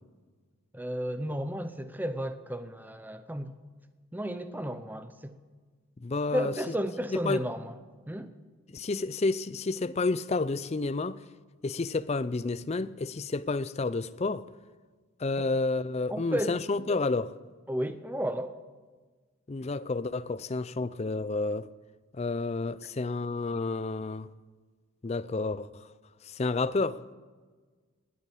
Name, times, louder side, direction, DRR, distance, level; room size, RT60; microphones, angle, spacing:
voice 1, 0.7-3.5 4.1-5.4 6.3-7.8 8.1-8.3 16.1-16.6 17.7-18.5, equal, 10° right, 0.7 m, -33 dB
voice 2, 6.0-6.5 7.2-7.4 8.7-11.2 11.6-14.4 15.2-17.3 19.5-21.7 22.1-24.3 25.0-25.8 26.2-27.0, left 3 dB, 30° left, 0.4 m, -30 dB
19.5 x 8.4 x 8.4 m
head